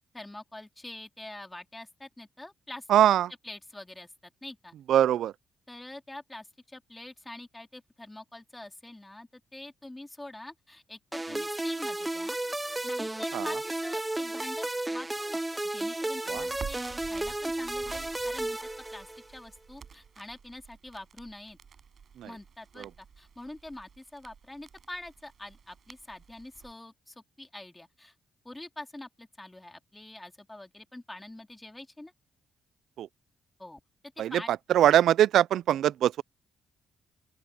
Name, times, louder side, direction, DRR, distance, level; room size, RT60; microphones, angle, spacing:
voice 1, 0.1-2.9 3.4-4.8 5.7-12.4 12.8-18.6 18.9-21.6 22.2-28.1 28.4-32.1 33.6-33.8 34.2-34.5, left 1 dB, 15° left, 3.7 m, -45 dB
voice 2, 2.9-3.3 4.9-5.3 13.3-13.5 16.3-16.5 22.2-22.3 22.8-22.9 33.0-33.1 34.2-36.2, right 11 dB, 80° right, 0.4 m, -23 dB
sound 1, 11.1-19.4, right 1 dB, 15° right, 0.9 m, -33 dB
Crackle, 16.3-26.7, right 6 dB, 55° right, 6.3 m, -49 dB
open air
cardioid pair, 65°, 0 cm